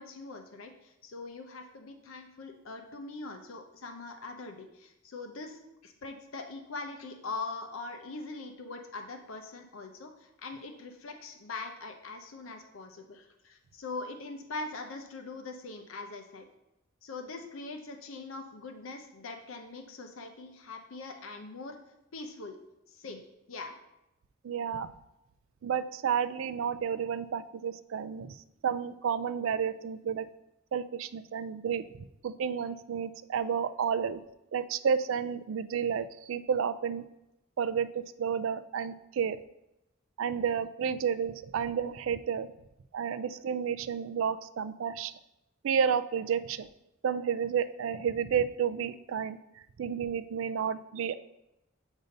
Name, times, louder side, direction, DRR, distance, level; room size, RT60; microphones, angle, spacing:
voice 1, 0.0-16.5 17.0-21.8 22.1-22.6 22.9-23.2 23.5-23.7, left 3 dB, 90° left, 5 dB, 0.6 m, -42 dB
voice 2, 24.4-24.9 25.6-28.4 28.6-30.3 30.7-31.8 32.2-34.2 34.5-37.1 37.6-39.4 40.2-42.5 42.9-45.1 45.6-46.7 47.0-49.4 49.8-51.1, right 7 dB, 75° right, 13 dB, 0.3 m, -31 dB
8.0 x 2.7 x 5.1 m, 0.89 s
head